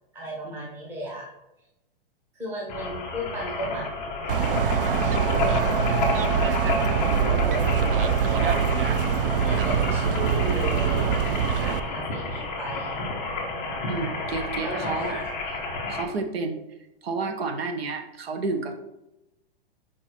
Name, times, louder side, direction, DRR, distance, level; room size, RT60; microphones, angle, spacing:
voice 1, 0.1-1.3 2.3-3.9 4.2-8.6 9.5-11.2 11.6-13.0 14.6-15.3, right 1 dB, 5° right, -3 dB, 0.8 m, -35 dB
sound 1, 2.7-16.0, left 3 dB, 10° left, 0.4 m, -30 dB
City Sidewalk Noise with Police Radio, 4.3-11.8, right 7 dB, 65° right, 0.6 m, -24 dB
voice 2, 13.9-15.2 15.9-16.6 17.0-18.7, right 3 dB, 85° right, 7 dB, 1.3 m, -30 dB
6.5 x 4.8 x 4.5 m, 0.93 s
hypercardioid pair, 180°, 30 cm